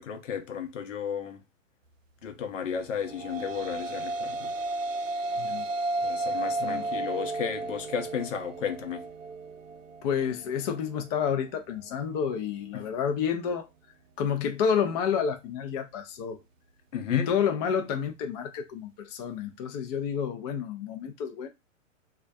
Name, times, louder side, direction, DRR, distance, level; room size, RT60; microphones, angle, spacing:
voice 1, 0.0-1.4 2.2-4.5 6.0-9.1 12.7-12.9 16.9-17.3, left 7 dB, 75° left, 0.8 m, -33 dB
sound 1, 2.9-11.4, right 2 dB, 80° right, 0.5 m, -33 dB
voice 2, 10.0-13.7 14.2-16.4 17.1-21.5, left 7 dB, 30° left, 0.5 m, -29 dB
2.2 x 2.1 x 2.6 m
hypercardioid pair, 120°, 38 cm